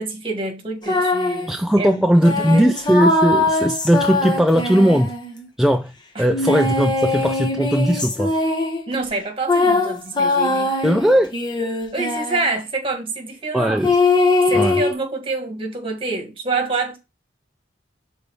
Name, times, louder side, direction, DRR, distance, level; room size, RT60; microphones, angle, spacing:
voice 1, 0.0-2.0 2.3-2.7 6.1-6.3 8.9-10.7 11.9-13.8 14.5-17.0, right 3 dB, 30° right, 1.7 m, -27 dB
sound 1, 0.8-1.5 2.2-5.5 6.3-8.9 9.5-12.6 13.8-14.9, left 2 dB, 25° left, 1.1 m, -21 dB
voice 2, 1.5-5.1 5.6-8.3 10.8-11.3 13.5-14.0 14.5-14.8, equal, ahead, 0.3 m, -18 dB
5.4 x 4.0 x 4.4 m
head